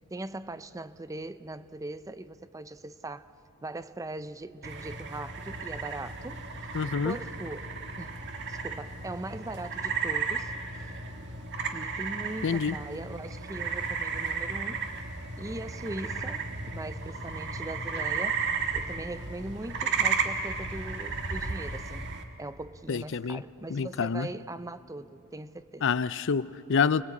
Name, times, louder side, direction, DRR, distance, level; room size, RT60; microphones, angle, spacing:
voice 1, 0.1-3.3 3.6-8.2 8.5-10.5 11.7-14.9 15.4-18.4 18.7-22.1 22.4-25.9, right 2 dB, 15° right, 0.5 m, -40 dB
sound 1, 4.6-22.2, right 5 dB, 50° right, 1.7 m, -34 dB
voice 2, 6.7-7.2 12.4-12.8 22.9-23.4 23.7-24.3 25.8-27.0, left 5 dB, 55° left, 0.5 m, -27 dB
30.0 x 20.5 x 8.5 m
head